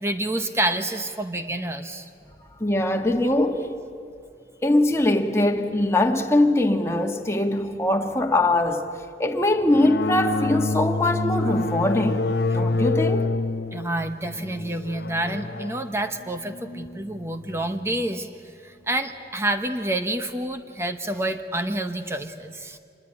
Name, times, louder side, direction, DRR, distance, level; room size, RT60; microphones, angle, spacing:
voice 1, 0.0-2.1 13.7-18.3 18.6-22.8, right 1 dB, 15° right, 0.9 m, -28 dB
voice 2, 2.6-3.7 4.6-8.8 9.2-12.3 12.5-13.3, left 1 dB, 15° left, 1.6 m, -22 dB
sound 1, 9.7-17.8, left 3 dB, 65° left, 0.7 m, -27 dB
25.5 x 21.0 x 9.9 m
head